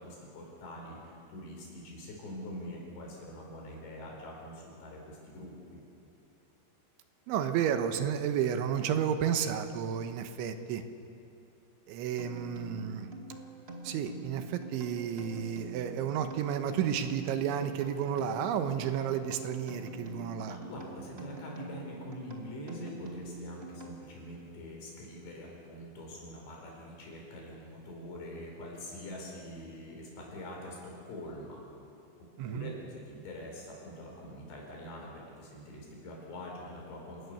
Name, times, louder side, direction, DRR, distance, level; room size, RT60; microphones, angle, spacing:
voice 1, 0.0-5.8 20.4-31.6 32.4-37.3, left 1 dB, 70° left, -1 dB, 7.2 m, -44 dB
voice 2, 7.3-10.8 11.9-13.1 13.8-20.6 32.4-32.7, right 8 dB, 90° right, 8 dB, 3.5 m, -32 dB
sound 1, 12.2-24.3, right 2 dB, 70° right, 0.5 m, -45 dB
28.5 x 17.5 x 7.1 m, 2.6 s
omnidirectional pair, 5.3 m